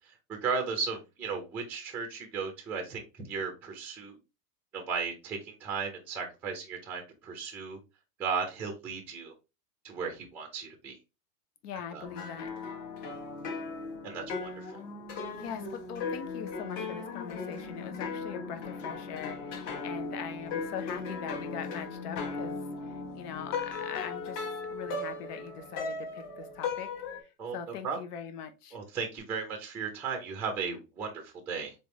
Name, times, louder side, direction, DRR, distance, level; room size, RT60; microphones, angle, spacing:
voice 1, 0.3-4.2 4.7-7.8 8.2-9.3 9.8-11.0 11.9-12.1 14.0-14.8 27.4-27.6 27.8-28.0 28.7-31.7, right 5 dB, 5° right, 0.4 m, -35 dB
voice 2, 11.6-12.5 15.4-24.4 24.7-26.9 27.2-28.8, left 8 dB, 85° left, 0.9 m, -41 dB
sound 1, 12.0-27.2, left 4 dB, 45° left, 1.2 m, -37 dB
sound 2, 15.2-23.8 29.2-29.3, left 8 dB, 15° left, 0.9 m, -48 dB
4.1 x 3.5 x 2.9 m
supercardioid pair, 150°, 46 cm